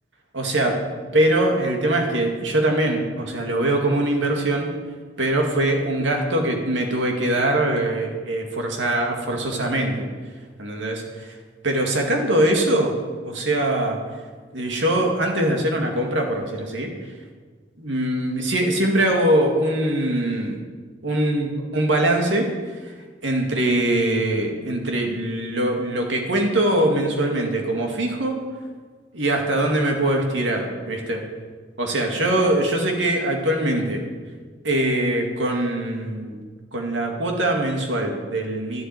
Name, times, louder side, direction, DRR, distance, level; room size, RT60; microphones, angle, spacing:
voice 1, 0.3-4.7 5.2-10.1 10.6-11.4 11.6-12.9 13.2-14.0 14.5-16.9 17.8-20.6 21.0-22.5 22.8-22.9 23.2-28.4 29.1-31.2 31.8-34.0 34.6-36.4 36.7-38.8, right 1 dB, 80° right, 2 dB, 2.2 m, -22 dB
11.0 x 7.5 x 9.3 m, 1.5 s
head